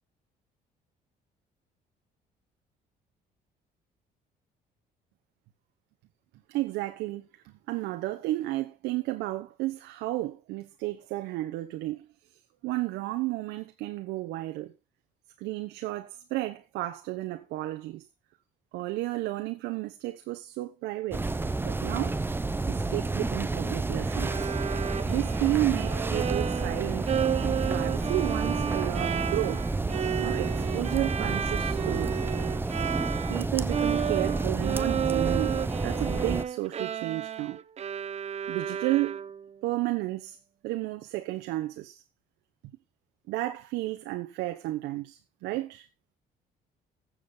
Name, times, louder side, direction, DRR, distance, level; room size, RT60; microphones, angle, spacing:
voice 1, 6.5-12.0 12.6-14.7 15.4-18.0 18.7-21.3 21.6-22.2 22.7-24.5 25.0-27.1 27.4-29.7 30.2-32.2 33.3-35.6 35.8-37.6 38.5-39.2 39.6-40.4 40.6-42.0 43.3-45.9, right 17 dB, 90° right, 1.1 m, -32 dB
sound 1, 21.1-36.4, right 3 dB, 15° right, 0.8 m, -30 dB
Bowed string instrument, 24.1-33.4 33.7-39.5, right 8 dB, 40° right, 0.8 m, -32 dB
15.0 x 7.5 x 3.9 m
cardioid pair, 110°, 17 cm